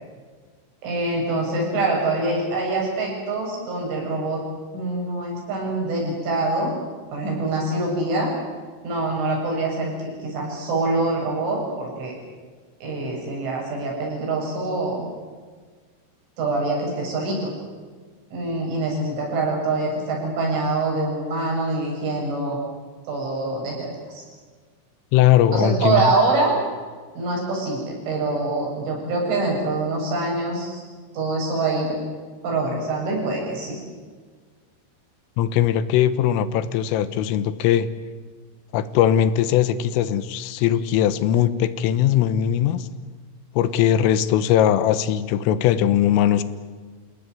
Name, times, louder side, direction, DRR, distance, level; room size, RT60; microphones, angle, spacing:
voice 1, 0.8-4.4 4.7-6.8 7.1-8.3 8.8-12.2 12.8-15.1 16.4-17.5 18.3-22.6 23.1-24.2 25.5-26.6 27.2-30.8 31.1-32.0 32.4-33.8, right 2 dB, 70° right, -1 dB, 10.0 m, -25 dB
voice 2, 25.1-26.1 35.4-37.9 38.7-42.9 43.6-46.4, left 10 dB, 90° left, 13 dB, 3.7 m, -20 dB
28.0 x 17.5 x 9.5 m, 1.5 s
omnidirectional pair, 5.8 m